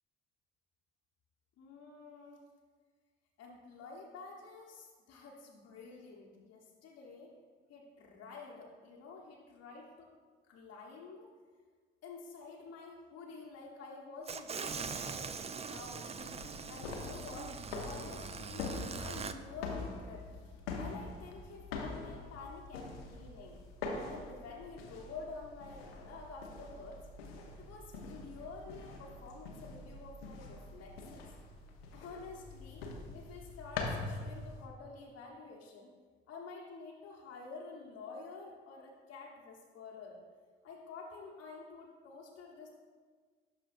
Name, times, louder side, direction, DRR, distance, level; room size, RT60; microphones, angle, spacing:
voice 1, 1.6-2.4 3.4-7.3 7.7-10.1 10.5-11.3 12.0-15.3 15.7-16.2 16.7-18.7 19.0-23.6 24.1-27.0 27.4-31.2 31.9-32.9 33.1-35.9 36.3-40.2 40.6-42.7, left 4 dB, 55° left, -3 dB, 1.1 m, -49 dB
sound 1, 14.3-19.3, right 5 dB, 20° right, 0.4 m, -42 dB
sound 2, 16.2-34.7, left 3 dB, 85° left, 0.8 m, -44 dB
12.0 x 4.9 x 2.6 m, 1.5 s
hypercardioid pair, 50°, 29 cm